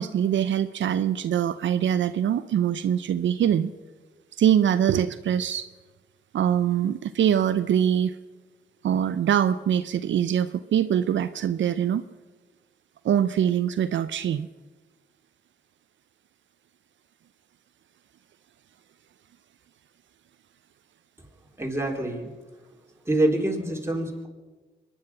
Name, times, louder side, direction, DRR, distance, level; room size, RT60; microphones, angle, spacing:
voice 1, 0.0-3.7 4.4-5.7 6.3-8.1 8.8-12.0 13.0-14.5, right 9 dB, 75° right, 13 dB, 0.5 m, -23 dB
voice 2, 21.6-22.3 23.1-24.3, right 1 dB, 15° right, 1 dB, 3.7 m, -26 dB
23.5 x 10.0 x 5.9 m, 1.3 s
supercardioid pair, 45°, 20 cm